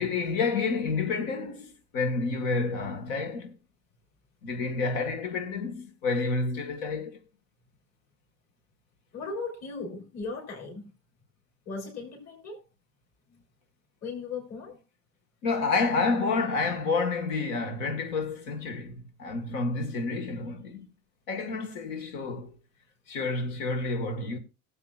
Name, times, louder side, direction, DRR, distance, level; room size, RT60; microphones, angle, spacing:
voice 1, 0.0-3.6 4.4-7.2 15.4-20.9 21.3-22.5 23.1-24.4, left 4 dB, 65° left, 1.8 m, -29 dB
voice 2, 9.1-10.9 11.7-12.6 13.3-13.4 14.0-14.8, left 4 dB, 40° left, 4.0 m, -37 dB
18.0 x 7.7 x 2.4 m
hypercardioid pair, 75°, 39 cm